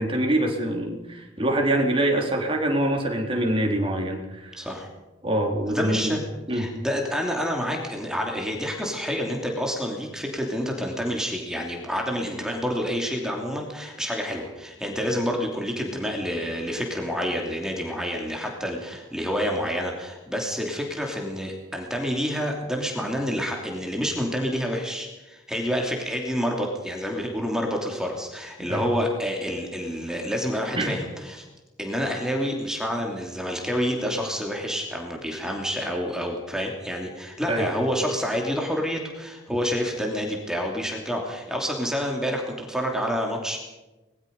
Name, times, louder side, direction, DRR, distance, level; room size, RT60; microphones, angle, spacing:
voice 1, 0.0-4.6 5.2-6.2 6.5-6.7 28.6-28.8 30.8-30.9 37.5-37.7 39.5-39.6, right 1 dB, 25° right, 1 dB, 3.7 m, -25 dB
voice 2, 4.6-4.9 5.7-6.2 6.5-31.5 31.8-43.6, equal, 5° right, 1 dB, 2.9 m, -28 dB
24.0 x 21.0 x 5.4 m, 1.1 s
head